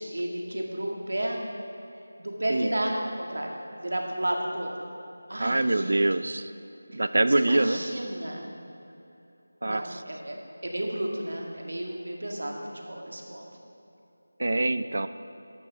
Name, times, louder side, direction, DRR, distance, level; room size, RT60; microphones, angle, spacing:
voice 1, 0.0-1.4 2.2-5.0 5.3-6.0 6.9-7.0 7.3-8.6 9.6-13.5, right 1 dB, 75° right, 0 dB, 2.0 m, -32 dB
voice 2, 5.4-6.5 6.9-7.8 9.6-10.0 14.4-15.1, right 2 dB, 50° right, 12 dB, 0.4 m, -25 dB
13.0 x 10.5 x 3.6 m, 2.8 s
figure-of-eight pair, 180°, 0 cm